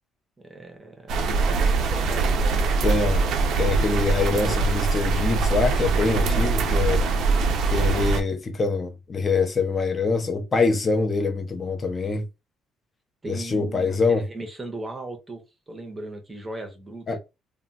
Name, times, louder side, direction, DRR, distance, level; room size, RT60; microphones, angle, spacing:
voice 1, 0.4-3.1 6.0-6.8 13.2-17.2, right 2 dB, 15° right, 0.6 m, -38 dB
sound 1, 1.1-8.2, right 3 dB, 55° right, 0.4 m, -22 dB
voice 2, 2.8-3.3 3.6-7.0 7.6-12.3 13.3-14.3 17.1-17.2, left 4 dB, 20° left, 0.4 m, -24 dB
2.1 x 2.1 x 3.8 m
cardioid pair, 165°, 0 cm